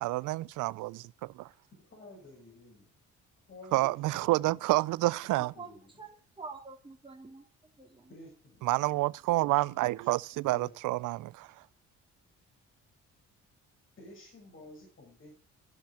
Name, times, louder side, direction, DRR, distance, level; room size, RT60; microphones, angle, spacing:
voice 1, 0.0-1.5 3.7-5.5 8.6-11.5, right 19 dB, 90° right, 0.5 m, -29 dB
voice 2, 1.7-2.9 3.5-4.7 5.2-5.9 8.1-8.7 9.5-9.6 9.9-11.0 14.0-15.3, left 2 dB, 40° left, 6.6 m, -52 dB
voice 3, 5.6-6.1 6.4-8.1, right 4 dB, 15° right, 3.8 m, -47 dB
13.0 x 7.1 x 8.9 m
cardioid pair, 90°, 30 cm